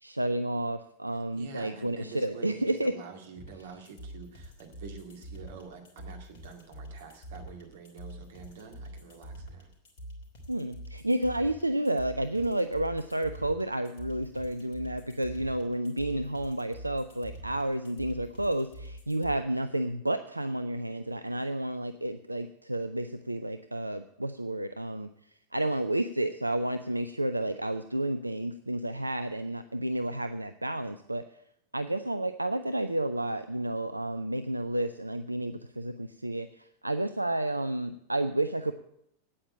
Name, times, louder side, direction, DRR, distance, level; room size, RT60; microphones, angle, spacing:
voice 1, 0.0-2.9 10.5-25.1 25.5-31.2 31.7-38.7, right 1 dB, 85° right, 10 dB, 0.4 m, -31 dB
voice 2, 1.1-9.7, right 5 dB, 55° right, 4 dB, 2.2 m, -47 dB
sound 1, 3.4-19.4, right 1 dB, 50° left, 3.1 m, -45 dB
9.0 x 8.6 x 8.6 m, 0.75 s
figure-of-eight pair, 90°, 0 cm